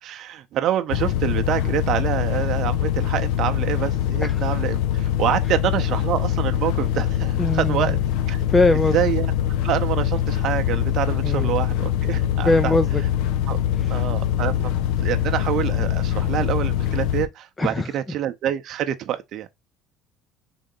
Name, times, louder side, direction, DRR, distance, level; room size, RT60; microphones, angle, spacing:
voice 1, 0.0-8.0 8.3-8.4 8.9-9.3 9.6-12.7 13.5-13.6 13.9-14.7 15.0-19.5, right 11 dB, 60° right, 0.6 m, -26 dB
sound 1, 0.9-17.3, left 10 dB, 80° left, 0.6 m, -23 dB
voice 2, 7.4-7.9 8.5-9.0 11.2-11.5 12.4-13.0 13.8-14.0 17.6-17.9, left 2 dB, 20° left, 0.4 m, -21 dB
3.8 x 3.5 x 3.9 m
supercardioid pair, 90°, 0 cm